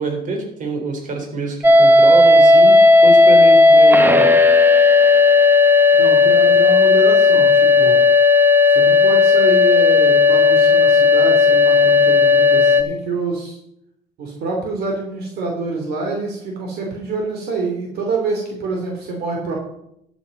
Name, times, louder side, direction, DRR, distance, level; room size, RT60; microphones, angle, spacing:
voice 1, 0.0-4.4, right 3 dB, 50° right, 3 dB, 3.7 m, -26 dB
sound 1, 1.6-12.8, left 3 dB, 10° right, 1.0 m, -12 dB
voice 2, 5.9-8.0 8.7-13.6 14.2-19.5, right 3 dB, 70° right, 0 dB, 2.9 m, -26 dB
13.5 x 7.1 x 5.4 m, 0.77 s
cardioid pair, 110°, 17 cm